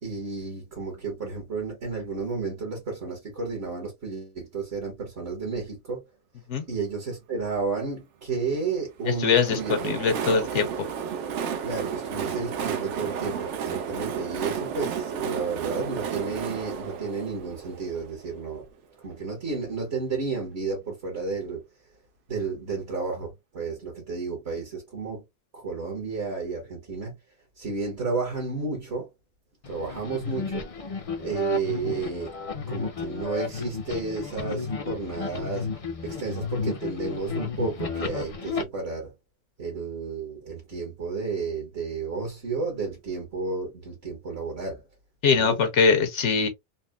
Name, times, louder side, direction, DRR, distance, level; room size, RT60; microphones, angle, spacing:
voice 1, 0.0-6.1 6.7-9.9 10.2-10.5 11.6-18.7 19.0-21.6 22.3-25.2 25.5-27.2 27.6-29.1 29.7-30.7 31.2-32.3 32.7-35.7 36.0-39.1 39.6-44.8 45.3-45.6, right 4 dB, 60° right, 1.5 m, -32 dB
Train, 9.0-18.7, right 7 dB, 75° right, 0.9 m, -32 dB
voice 2, 9.1-10.7 45.2-46.5, left 5 dB, 75° left, 1.1 m, -22 dB
sound 1, 29.6-38.6, left 5 dB, 45° left, 0.5 m, -33 dB
4.0 x 2.1 x 2.2 m
omnidirectional pair, 1.2 m